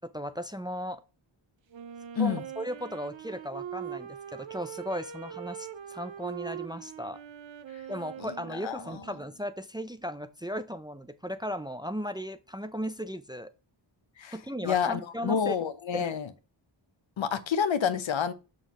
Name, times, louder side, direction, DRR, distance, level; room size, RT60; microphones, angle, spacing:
voice 1, 0.0-1.0 2.2-7.2 7.9-13.5 14.3-15.6 15.9-16.1, equal, 10° right, 0.5 m, -36 dB
Wind instrument woodwind instrument, 1.7-9.4, right 9 dB, 70° right, 0.8 m, -42 dB
voice 2, 14.6-16.3 17.2-18.3, left 7 dB, 70° left, 0.9 m, -28 dB
7.2 x 6.3 x 2.9 m
wide cardioid pair, 135°, 48 cm